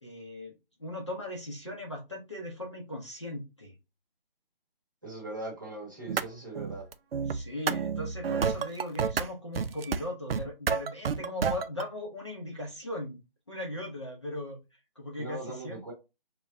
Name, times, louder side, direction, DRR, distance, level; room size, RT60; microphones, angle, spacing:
voice 1, 0.0-0.5 0.8-3.7 7.3-13.2 13.5-14.6 15.0-15.9, left 1 dB, 30° left, 0.6 m, -38 dB
voice 2, 5.0-6.9 15.2-15.9, right 2 dB, 20° right, 0.8 m, -40 dB
sound 1, 6.1-6.3 6.6-9.3 9.6-10.0 10.3-11.9, right 6 dB, 80° right, 0.4 m, -30 dB
3.2 x 2.2 x 3.7 m
figure-of-eight pair, 175°, 29 cm